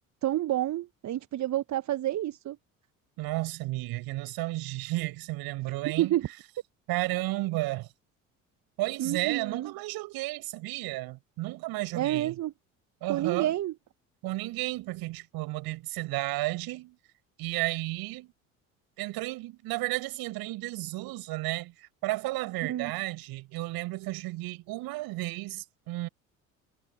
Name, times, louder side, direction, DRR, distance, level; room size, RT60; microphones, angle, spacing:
voice 1, 0.2-2.6 6.0-6.3 9.0-9.7 11.9-12.5 13.1-13.7 22.6-22.9, right 13 dB, 45° right, 1.1 m, -29 dB
voice 2, 3.2-6.1 6.9-7.9 8.8-12.4 13.0-13.5 14.2-17.0 17.4-18.3 19.0-26.1, right 20 dB, 60° right, 6.5 m, -33 dB
figure-of-eight pair, 55°, 40 cm